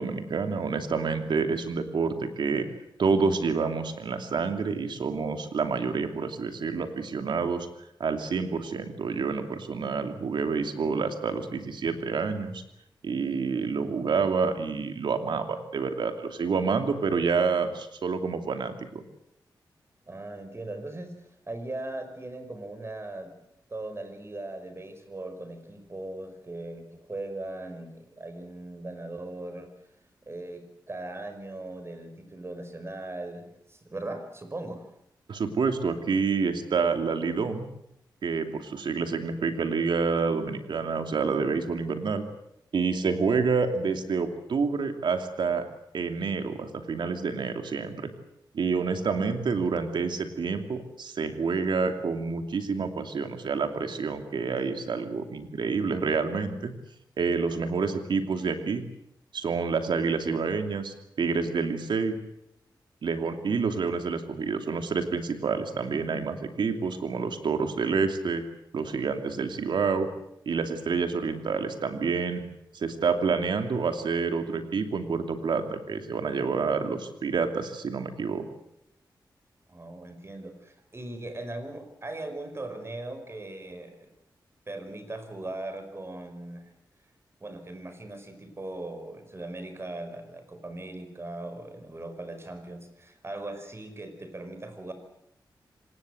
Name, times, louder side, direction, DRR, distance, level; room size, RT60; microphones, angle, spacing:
voice 1, 0.0-2.7 3.0-7.7 8.0-12.6 13.0-19.0 35.3-37.7 38.2-42.3 42.7-45.7 45.9-48.1 48.5-56.7 57.2-58.8 59.3-62.2 63.0-68.4 68.7-70.1 70.5-72.4 72.7-78.5, right 5 dB, 80° right, 6 dB, 2.8 m, -28 dB
voice 2, 20.1-21.1 21.5-23.3 23.7-29.7 30.3-34.8 79.7-84.1 84.7-86.7 87.4-94.9, right 2 dB, 35° right, 8 dB, 5.3 m, -39 dB
25.5 x 19.5 x 7.9 m, 0.78 s
cardioid pair, 75°, 8 cm